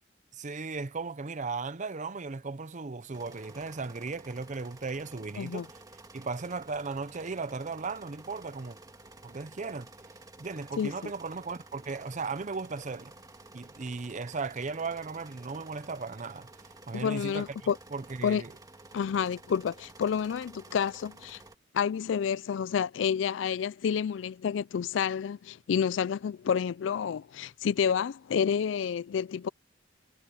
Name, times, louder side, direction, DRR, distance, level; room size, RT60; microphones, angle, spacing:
voice 1, 0.3-5.8 6.1-8.8 9.2-9.9 10.4-13.1 13.5-16.5 16.9-18.5, right 4 dB, 40° right, 0.7 m, -36 dB
sound 1, 3.1-21.5, right 2 dB, 20° right, 2.4 m, -52 dB
voice 2, 10.8-11.1 16.9-17.8 18.2-18.4 18.9-21.4 21.7-29.5, left 7 dB, 70° left, 0.3 m, -29 dB
head